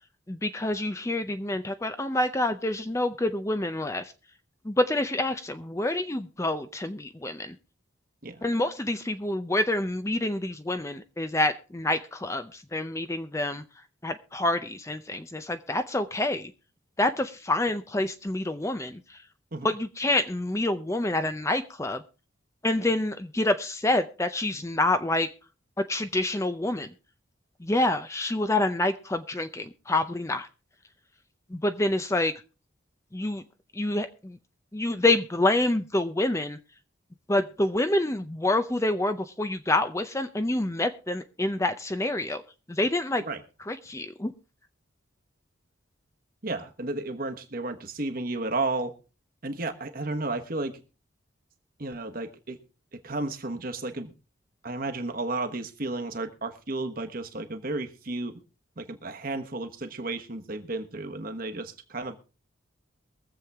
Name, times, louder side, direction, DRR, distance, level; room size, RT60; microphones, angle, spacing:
voice 1, 0.3-4.1 4.6-7.6 8.4-13.6 14.0-16.5 17.0-19.2 19.6-22.0 22.6-25.3 25.8-26.9 27.6-30.5 31.5-32.3 33.1-33.4 33.7-34.4 34.7-36.6 37.3-42.4 42.7-43.2 43.7-44.3, left 2 dB, 15° left, 9 dB, 0.6 m, -27 dB
voice 2, 46.4-48.9 49.4-50.8 51.8-52.6 53.0-54.1 54.6-58.4 58.8-62.2, right 2 dB, 45° right, 5 dB, 1.3 m, -33 dB
23.0 x 7.6 x 3.5 m, 0.33 s
head